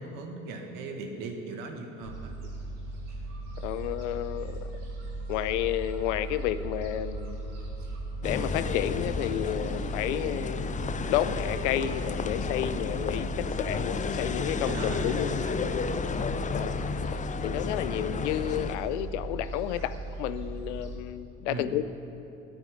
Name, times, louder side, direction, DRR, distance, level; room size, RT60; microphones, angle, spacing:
voice 1, 0.0-2.3 10.3-10.5 14.2-16.2 21.5-21.8, right 3 dB, 65° right, 3 dB, 1.8 m, -39 dB
Gull seagull, 2.0-21.0, right 2 dB, 90° right, 1.9 m, -37 dB
voice 2, 3.6-4.7 5.3-7.7 8.2-15.9 16.5-16.8 17.4-21.8, left 12 dB, 80° left, 14 dB, 0.6 m, -31 dB
sound 1, 8.2-18.8, left 5 dB, 20° left, 0.6 m, -33 dB
9.1 x 8.9 x 9.9 m, 2.9 s
hypercardioid pair, 70°, 35 cm